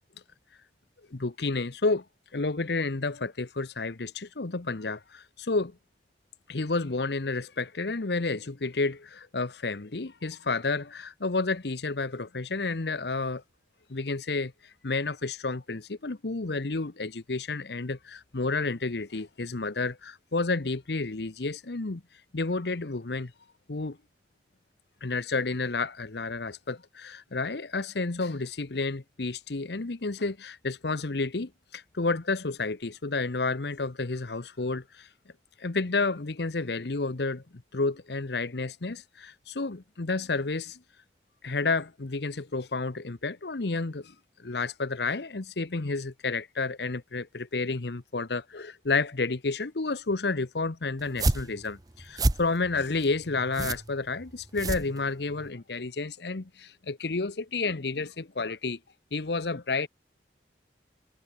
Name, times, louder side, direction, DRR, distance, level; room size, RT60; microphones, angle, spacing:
voice 1, 1.1-2.0 2.3-5.8 6.5-13.4 13.9-14.5 14.8-22.0 22.3-23.3 23.7-24.0 25.0-35.1 35.6-40.8 41.4-58.8 59.1-59.9, left 3 dB, 70° left, 1.0 m, -31 dB
sound 1, 51.0-55.5, right 2 dB, 20° right, 0.7 m, -30 dB
head